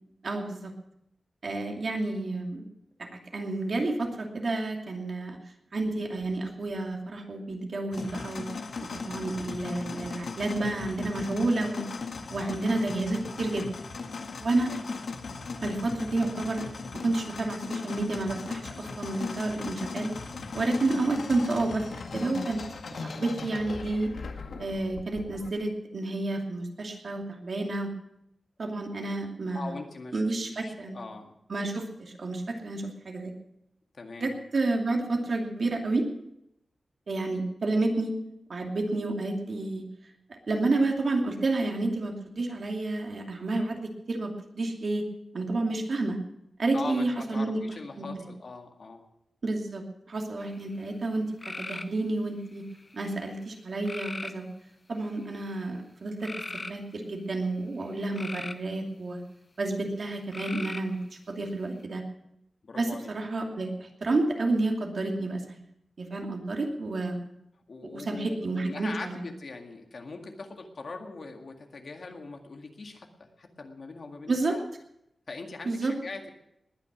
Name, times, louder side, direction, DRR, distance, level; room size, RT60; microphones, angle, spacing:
voice 1, 0.2-0.7 1.4-2.7 3.0-5.4 5.7-8.5 8.9-11.9 12.3-13.7 14.4-14.7 15.6-16.7 17.0-20.1 20.5-22.6 22.9-24.1 24.6-27.9 28.6-29.7 30.1-31.1 31.5-33.3 34.2-36.0 37.1-38.1 38.5-39.8 40.5-45.0 45.3-46.2 46.6-47.6 48.0-48.3 49.4-51.3 51.6-52.6 52.9-54.5 54.9-56.3 56.7-59.2 59.6-61.0 61.3-62.0 62.8-65.6 66.0-67.2 67.9-69.2 74.3-74.5 75.6-75.9, right 2 dB, 50° right, 2 dB, 2.6 m, -30 dB
sound 1, 7.9-25.5, left 4 dB, 75° left, 1.8 m, -38 dB
voice 2, 14.5-14.9 29.5-31.3 33.9-34.4 46.7-49.0 62.6-63.1 67.7-74.6 75.3-76.3, left 3 dB, 55° left, 3 dB, 2.0 m, -41 dB
sound 2, 50.4-50.9 51.4-52.0 52.6-53.1 53.9-54.4 55.1-55.5 56.2-56.7 57.8-58.7 60.3-61.0, left 2 dB, 30° left, 0.7 m, -38 dB
20.0 x 9.9 x 6.2 m, 0.81 s
wide cardioid pair, 155°, 0 cm